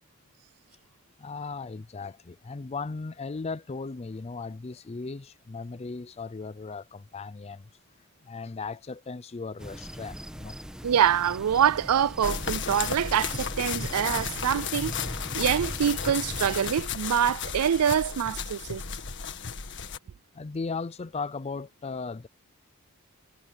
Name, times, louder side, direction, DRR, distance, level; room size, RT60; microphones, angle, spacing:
voice 1, 1.2-7.7 8.2-10.6 20.3-22.3, left 4 dB, 30° left, 0.4 m, -37 dB
sound 1, 9.6-16.7, equal, 5° right, 1.7 m, -40 dB
voice 2, 10.8-14.9 15.3-18.8, right 9 dB, 85° right, 0.4 m, -25 dB
sound 2, 12.2-20.0, left 6 dB, 55° left, 1.7 m, -34 dB
head